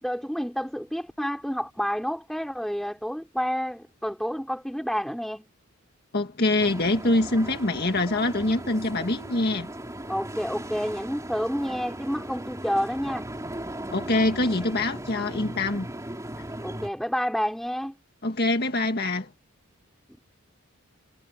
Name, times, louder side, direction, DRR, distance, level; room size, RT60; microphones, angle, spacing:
voice 1, 0.0-5.4 10.1-13.3 16.6-17.9, equal, ahead, 4.4 m, -29 dB
voice 2, 6.1-9.7 13.9-15.9 18.2-19.3, left 2 dB, 45° left, 1.8 m, -24 dB
sound 1, 6.6-16.9, right 1 dB, 15° right, 3.6 m, -37 dB
head